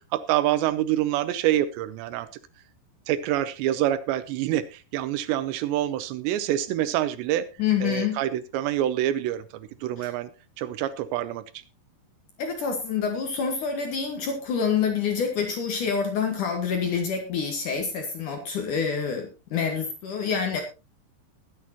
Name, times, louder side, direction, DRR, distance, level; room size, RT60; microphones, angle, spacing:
voice 1, 0.0-2.3 3.1-7.5 7.8-10.3 10.6-11.6, right 12 dB, 80° right, 14 dB, 2.8 m, -26 dB
voice 2, 7.6-8.2 10.0-10.1 12.4-20.6, left 6 dB, 60° left, 4 dB, 2.4 m, -27 dB
20.5 x 8.6 x 2.9 m, 0.29 s
omnidirectional pair, 5.3 m